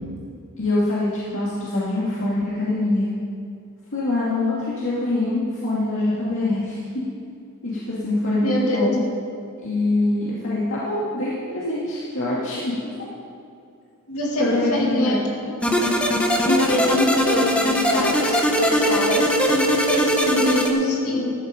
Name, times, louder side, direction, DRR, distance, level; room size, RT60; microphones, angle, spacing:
voice 1, 0.6-3.1 3.9-6.8 7.6-9.0 9.6-12.9 14.4-15.2, left 2 dB, 60° left, -8 dB, 2.4 m, -24 dB
voice 2, 8.4-9.0 14.1-15.2 16.4-21.3, left 1 dB, 75° left, -2 dB, 2.5 m, -24 dB
sound 1, 15.6-20.7, equal, 5° left, 1.1 m, -20 dB
14.5 x 12.5 x 5.2 m, 2.5 s
head